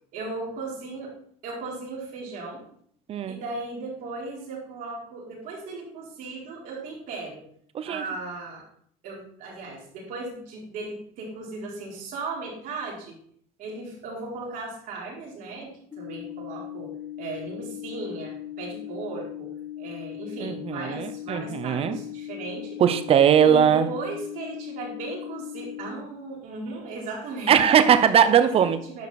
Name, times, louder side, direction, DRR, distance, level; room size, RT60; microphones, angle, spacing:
voice 1, 0.1-1.1 1.4-2.6 3.2-7.4 7.8-8.6 9.0-13.2 13.6-19.5 19.8-22.8 23.4-27.6 28.3-29.1, right 3 dB, 60° right, -3 dB, 4.3 m, -36 dB
voice 2, 7.7-8.1 20.4-22.0 22.8-23.9 27.5-28.8, right 8 dB, 40° right, 12 dB, 0.9 m, -20 dB
sound 1, 15.9-25.9, left 12 dB, 25° left, 1.6 m, -38 dB
10.5 x 5.4 x 4.2 m, 0.64 s
supercardioid pair, 115°, 15 cm